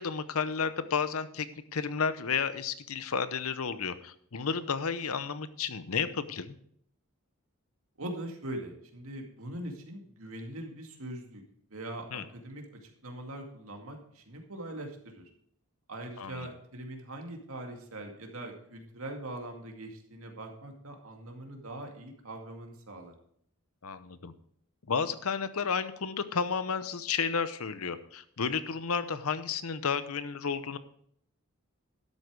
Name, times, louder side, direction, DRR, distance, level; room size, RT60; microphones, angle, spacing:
voice 1, 0.0-6.6 12.1-12.2 16.2-16.5 23.8-24.3 24.9-30.8, left 6 dB, 80° left, 13 dB, 0.8 m, -32 dB
voice 2, 8.0-11.4 11.7-15.3 15.9-23.1, right 1 dB, 75° right, 3 dB, 2.2 m, -42 dB
12.0 x 8.3 x 4.8 m, 0.65 s
head